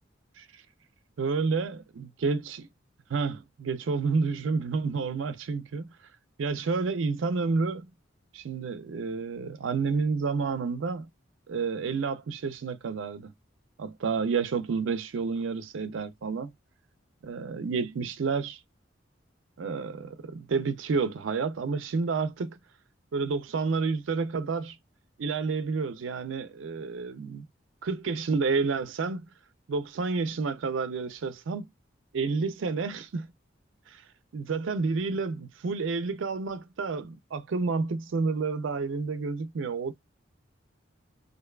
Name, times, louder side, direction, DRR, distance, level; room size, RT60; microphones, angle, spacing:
voice 1, 1.2-2.7 3.1-5.9 6.4-7.9 8.3-11.1 11.5-13.3 13.8-16.5 17.2-18.6 19.6-22.6 23.1-24.8 25.2-27.4 27.8-29.3 29.7-31.7 32.1-33.3 33.9-34.0 34.3-39.9, right 4 dB, 85° right, 0.4 m, -30 dB
2.5 x 2.2 x 2.2 m
head